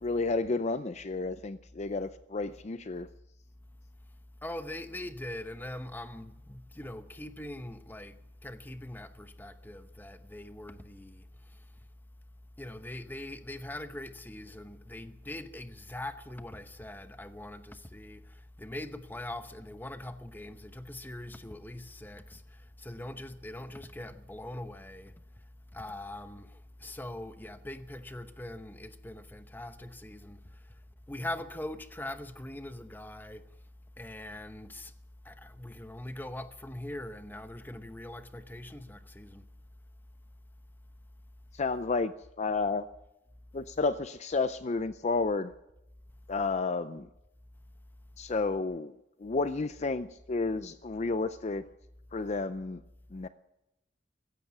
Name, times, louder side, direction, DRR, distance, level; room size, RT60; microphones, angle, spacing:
voice 1, 0.0-3.1 41.5-42.1 42.4-42.9 43.5-45.5 46.3-47.1 48.2-48.9 49.2-51.6 52.1-52.8 53.1-53.3, left 3 dB, 35° left, 0.5 m, -31 dB
voice 2, 4.4-11.2 12.6-25.1 25.7-30.6 31.1-33.4 34.0-34.9 35.2-39.4, left 1 dB, 10° left, 0.9 m, -42 dB
16.0 x 14.5 x 6.0 m
head